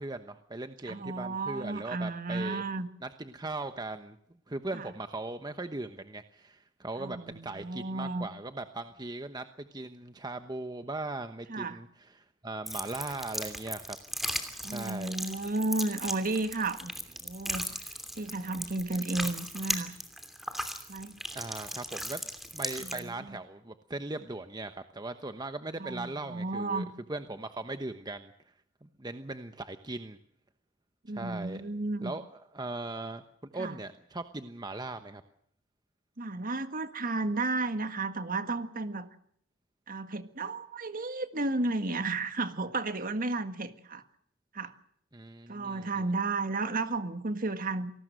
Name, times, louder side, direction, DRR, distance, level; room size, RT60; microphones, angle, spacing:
voice 1, 0.0-2.6 3.0-4.2 4.5-7.2 7.4-14.0 14.6-15.2 21.3-22.2 22.5-28.3 28.8-30.2 31.1-31.6 32.0-35.2 45.1-46.0, right 2 dB, 20° right, 9 dB, 1.0 m, -39 dB
voice 2, 0.9-2.9 4.7-4.9 7.0-8.3 11.5-11.8 14.6-16.9 17.2-17.6 18.2-20.0 20.9-21.2 22.8-23.4 25.8-26.9 31.0-32.1 33.6-33.8 36.2-39.1 39.9-44.0 44.5-44.7 45.5-47.9, right 2 dB, 45° right, 9 dB, 1.7 m, -33 dB
sound 1, 12.7-23.0, equal, ahead, 2.8 m, -37 dB
27.0 x 19.0 x 6.5 m, 0.66 s
head